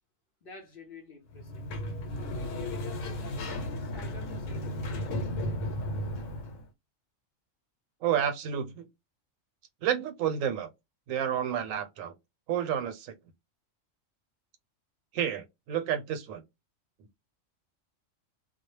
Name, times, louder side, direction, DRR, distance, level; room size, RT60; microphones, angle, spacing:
voice 1, 0.4-1.6 2.3-5.6, left 4 dB, 55° left, 0.7 m, -48 dB
Sliding door, 1.3-6.6, left 1 dB, 75° left, 1.0 m, -34 dB
voice 2, 8.0-8.9 9.8-10.7 11.1-12.1 12.5-13.1 15.1-16.4, right 9 dB, 80° right, 1.0 m, -30 dB
2.3 x 2.0 x 3.0 m
omnidirectional pair, 1.4 m